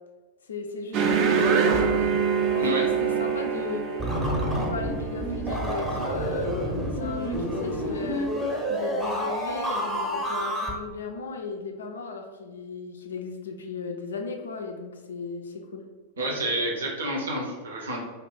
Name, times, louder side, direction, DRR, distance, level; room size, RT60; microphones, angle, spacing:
voice 1, 0.4-2.2 2.5-3.9 4.5-6.6 6.9-8.3 8.7-15.9, left 4 dB, 65° left, 3 dB, 0.3 m, -36 dB
sound 1, 0.9-5.9, right 6 dB, 40° right, 0.4 m, -25 dB
sound 2, 4.0-10.7, equal, 10° right, 0.7 m, -29 dB
voice 2, 16.2-18.0, right 1 dB, 65° right, -1 dB, 0.7 m, -29 dB
2.6 x 2.3 x 3.8 m, 1.3 s
figure-of-eight pair, 90°, 0 cm